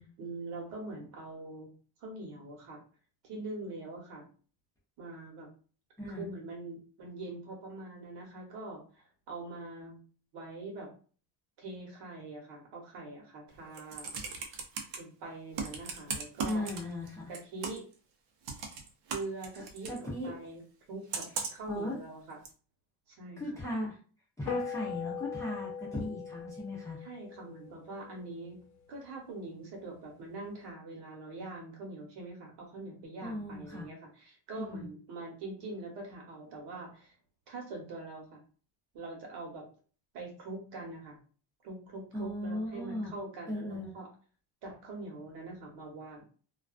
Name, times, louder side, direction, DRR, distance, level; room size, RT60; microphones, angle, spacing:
voice 1, 0.2-1.7 2.0-2.8 3.2-4.3 5.0-5.5 6.1-10.0 10.3-10.9 11.6-14.1 15.0-16.6 17.3-17.8 19.1-20.6 20.9-22.4 23.2-23.4 27.0-28.6 28.9-37.1 37.5-38.4 38.9-39.6 40.1-41.2 41.6-44.1 44.6-46.2, right 2 dB, 70° right, 1 dB, 1.1 m, -43 dB
voice 2, 6.0-6.3 16.4-17.3 19.5-20.3 21.7-22.0 23.4-24.0 24.4-27.0 33.2-33.9 34.6-34.9 42.1-43.1 43.5-43.9, left 1 dB, 10° left, -5 dB, 0.4 m, -37 dB
Computer keyboard, 13.5-15.0 15.5-17.1 17.3-17.9 18.4-20.0 21.1-21.7 22.4-22.5, right 5 dB, 85° right, 0.7 m, -37 dB
sound 1, 24.5-29.1, left 6 dB, 85° left, 0.7 m, -40 dB
2.3 x 2.2 x 2.4 m, 0.40 s
cardioid pair, 170°, 43 cm